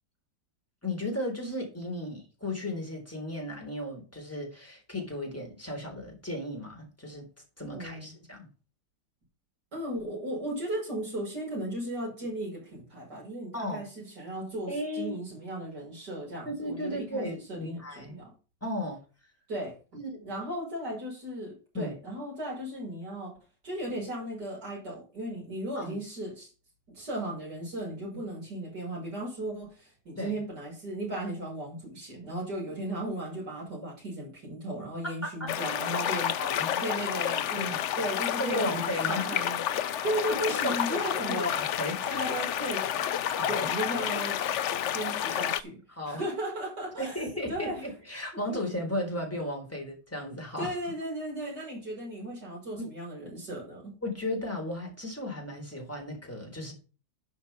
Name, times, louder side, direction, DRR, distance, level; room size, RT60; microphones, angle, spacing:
voice 1, 0.8-7.3 7.6-8.5 13.5-13.8 14.7-15.1 16.5-18.1 18.6-19.0 19.9-20.1 21.7-21.9 25.8-26.0 30.2-30.4 35.4-35.5 36.4-36.7 37.6-37.8 38.4-39.3 40.6-41.0 41.3-42.3 43.3-43.7 45.2-45.4 46.0-46.2 47.0-50.7 52.8-52.9 54.0-56.7, left 1 dB, 10° left, 0 dB, 3.8 m, -35 dB
voice 2, 7.7-8.1 9.7-18.3 19.5-19.7 20.2-23.4 23.6-26.5 26.9-36.3 36.8-37.7 38.0-39.6 40.0-41.6 42.0-43.1 43.5-44.3 44.9-45.8 46.0-47.8 48.5-48.6 50.6-53.9, right 1 dB, 75° right, -3 dB, 6.5 m, -36 dB
sound 1, 35.5-45.6, left 10 dB, 60° left, 0.7 m, -30 dB
11.5 x 5.3 x 5.7 m, 0.34 s
omnidirectional pair, 1.8 m